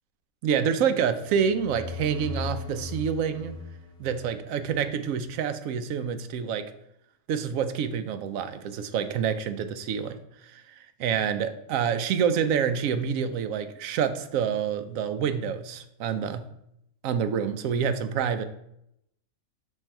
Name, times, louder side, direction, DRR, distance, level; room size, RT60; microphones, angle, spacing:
voice 1, 0.4-3.6 4.0-6.7 7.3-10.2 10.5-10.6 11.0-16.4 17.0-18.4, right 7 dB, 80° right, 10 dB, 1.0 m, -27 dB
sound 1, 1.1-4.8, left 3 dB, 35° left, 0.6 m, -38 dB
6.4 x 3.3 x 4.4 m, 0.78 s
omnidirectional pair, 1.4 m